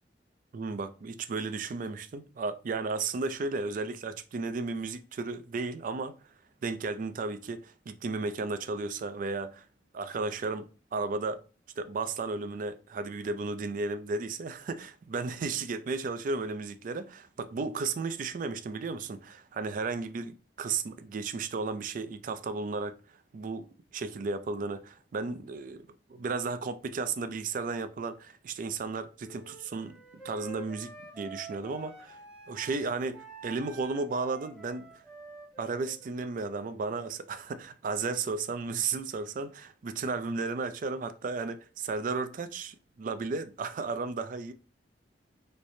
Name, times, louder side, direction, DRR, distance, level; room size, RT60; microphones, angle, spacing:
voice 1, 0.5-6.1 6.6-9.7 9.9-11.4 11.8-22.9 23.3-23.7 23.9-25.8 26.1-30.0 30.2-32.2 32.5-34.9 35.6-44.5, right 4 dB, 50° right, 0.3 m, -34 dB
Wind instrument woodwind instrument, 29.2-32.8 33.1-36.9, right 3 dB, 5° right, 0.9 m, -48 dB
3.2 x 3.1 x 2.6 m
head